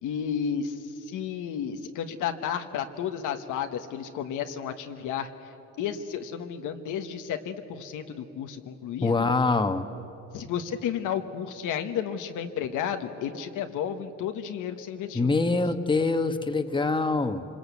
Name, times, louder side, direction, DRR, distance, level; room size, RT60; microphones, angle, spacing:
voice 1, 0.0-5.3 5.8-9.3 10.3-15.6, left 8 dB, 90° left, 6 dB, 1.4 m, -32 dB
voice 2, 9.0-9.9 15.1-17.5, left 3 dB, 15° left, 8 dB, 1.2 m, -24 dB
25.5 x 21.0 x 8.3 m, 2.9 s
cardioid pair, 90°, 30 cm